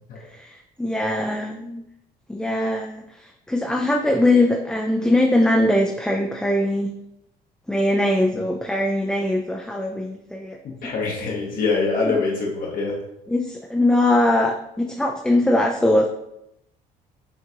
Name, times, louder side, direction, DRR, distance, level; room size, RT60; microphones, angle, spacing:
voice 1, 0.3-1.8 2.3-6.9 7.7-10.6 13.3-16.1, left 1 dB, 5° left, 1 dB, 0.3 m, -21 dB
voice 2, 10.6-13.0, left 4 dB, 55° left, -2 dB, 0.9 m, -24 dB
5.7 x 2.4 x 2.8 m, 0.82 s
cardioid pair, 110°, 17 cm